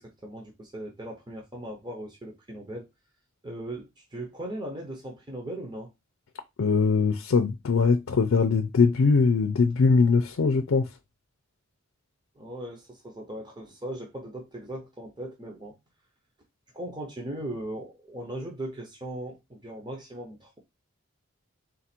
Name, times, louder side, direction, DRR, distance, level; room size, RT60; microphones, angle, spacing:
voice 1, 0.0-2.9 3.4-5.9 12.4-15.7 16.7-20.6, right 1 dB, 20° right, 0.8 m, -38 dB
voice 2, 6.6-10.9, left 4 dB, 85° left, 0.5 m, -21 dB
3.9 x 2.5 x 4.3 m
head